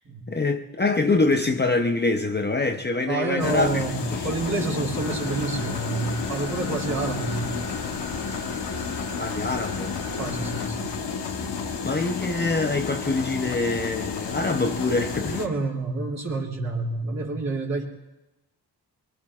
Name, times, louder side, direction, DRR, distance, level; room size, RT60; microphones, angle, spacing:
voice 1, 0.3-3.8 4.1-4.3 9.2-10.0 11.8-15.3, left 3 dB, 25° left, 0.7 m, -25 dB
voice 2, 3.1-7.6 10.2-10.9 15.3-17.8, right 3 dB, 40° right, 2.9 m, -28 dB
sound 1, 3.4-15.5, left 5 dB, 90° left, 1.2 m, -31 dB
sound 2, 5.0-10.7, left 3 dB, 65° left, 1.3 m, -38 dB
23.5 x 22.5 x 2.4 m
cardioid pair, 85°, 41 cm